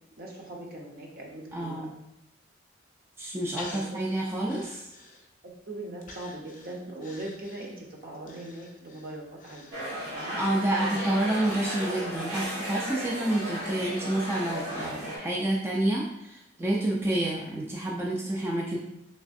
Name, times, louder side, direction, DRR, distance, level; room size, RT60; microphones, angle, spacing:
voice 1, 0.2-1.9 3.7-4.0 4.5-4.6 5.7-10.4, right 1 dB, 50° right, -1 dB, 0.7 m, -40 dB
voice 2, 1.5-1.9 3.2-4.8 10.4-18.8, right 1 dB, 10° right, -3 dB, 0.3 m, -29 dB
Breathing, 3.6-5.5 6.0-10.2 10.6-10.7, left 3 dB, 40° left, 0.5 m, -48 dB
sound 1, 9.7-15.2, equal, 85° right, 1.5 m, -35 dB
3.3 x 3.1 x 2.6 m, 0.87 s
head